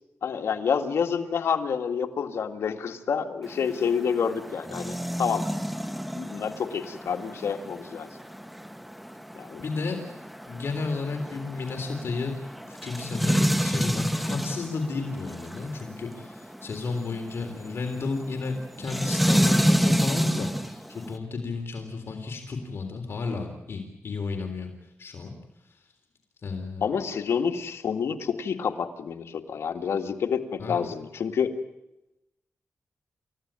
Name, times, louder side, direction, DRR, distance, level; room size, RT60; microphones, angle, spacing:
voice 1, 0.2-5.4 6.2-8.1 9.4-9.6 26.8-31.5, left 6 dB, 80° left, 5 dB, 2.1 m, -28 dB
sound 1, 3.4-21.1, equal, ahead, 1.2 m, -29 dB
voice 2, 9.6-10.0 10.5-12.3 12.7-24.7 25.0-25.3 25.7-25.8 26.4-26.8 30.6-30.9, left 4 dB, 60° left, 4 dB, 3.7 m, -33 dB
30.0 x 15.5 x 9.0 m, 0.93 s
wide cardioid pair, 100°, 4 cm